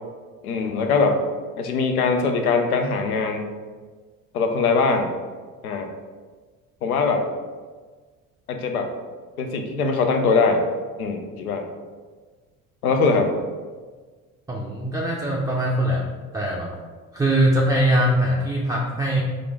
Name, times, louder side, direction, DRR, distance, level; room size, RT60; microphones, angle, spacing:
voice 1, 0.4-1.2 1.6-3.4 4.3-5.1 5.6-5.9 6.8-7.2 8.5-8.9 9.4-10.7 11.0-11.7 12.8-13.3, left 4 dB, 90° left, 4 dB, 0.5 m, -21 dB
voice 2, 14.5-16.1 16.3-16.7 17.1-19.2, right 1 dB, 10° right, -3 dB, 0.4 m, -21 dB
4.1 x 2.5 x 3.4 m, 1.4 s
hypercardioid pair, 60°, 42 cm